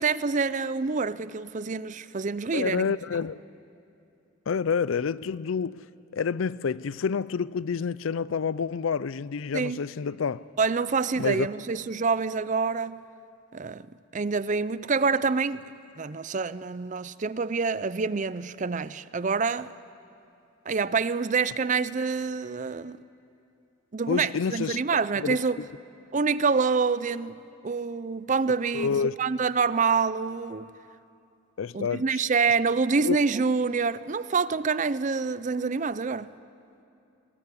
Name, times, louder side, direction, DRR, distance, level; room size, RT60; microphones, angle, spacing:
voice 1, 0.0-2.9 9.5-9.8 10.6-13.0 13.5-13.9 14.1-15.7 16.0-19.7 20.7-23.0 23.9-25.6 26.1-30.7 31.7-36.3, right 5 dB, 40° right, 0.5 m, -27 dB
voice 2, 2.5-3.4 4.5-5.9 6.1-10.4 11.2-11.5 24.1-25.7 28.7-29.2 31.6-32.2 33.0-33.2, left 6 dB, 80° left, 0.5 m, -28 dB
21.0 x 20.5 x 9.7 m
head